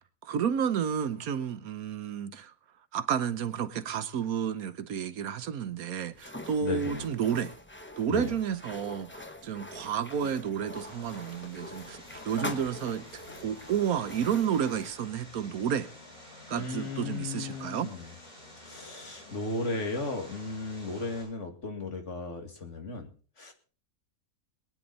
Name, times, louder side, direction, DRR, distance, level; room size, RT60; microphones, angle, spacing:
voice 1, 0.2-2.5 2.9-7.5 8.0-13.0 13.4-15.9 16.5-17.9, right 8 dB, 75° right, 1.3 m, -31 dB
sound 1, 6.1-15.0, left 1 dB, 10° left, 0.8 m, -43 dB
voice 2, 6.6-7.1 8.1-8.3 16.5-18.1 18.6-23.1 23.4-23.5, left 3 dB, 55° left, 2.4 m, -35 dB
Vehicle, 10.7-21.2, left 1 dB, 30° left, 8.2 m, -50 dB
22.5 x 9.8 x 4.0 m
omnidirectional pair, 1.6 m